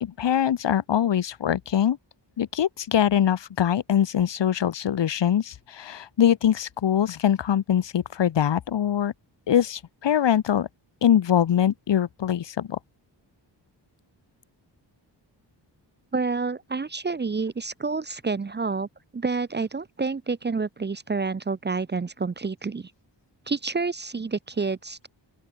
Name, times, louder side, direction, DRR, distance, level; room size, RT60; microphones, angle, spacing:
voice 1, 0.0-2.0 2.4-9.1 9.5-10.7 11.0-12.8, left 9 dB, 70° left, 1.5 m, -23 dB
voice 2, 16.1-18.9 19.1-22.9 23.5-25.1, right 4 dB, 25° right, 0.7 m, -28 dB
open air
wide cardioid pair, 145°, 44 cm